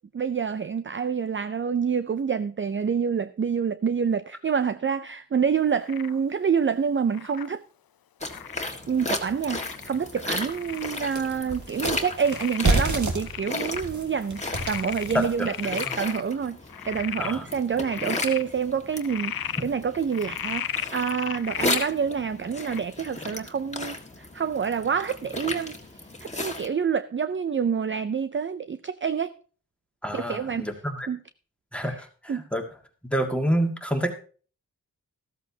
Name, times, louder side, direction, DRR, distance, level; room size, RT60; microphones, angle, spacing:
voice 1, 0.1-7.6 8.9-20.6 20.9-29.3 30.1-30.7 31.1-31.2 32.3-32.4, right 6 dB, 35° right, 0.4 m, -27 dB
Frog, 5.9-6.2 7.1-7.5 8.3-8.7 9.5-10.0 10.5-11.0 11.5-11.6 12.2-13.8 14.2-16.2 16.7-17.3 17.8-18.4 18.9-19.6 20.1-21.9 22.6-22.8, left 9 dB, 70° left, 0.6 m, -35 dB
sound 1, 8.2-26.7, left 2 dB, 20° left, 1.7 m, -35 dB
sound 2, 9.0-9.1 9.6-9.7 10.1-16.1, right 2 dB, 50° right, 1.8 m, -30 dB
voice 2, 15.1-15.9 17.2-17.5 30.0-31.1 31.7-32.7 33.0-34.1, equal, 5° left, 1.8 m, -28 dB
14.0 x 13.5 x 2.8 m
wide cardioid pair, 85°, 36 cm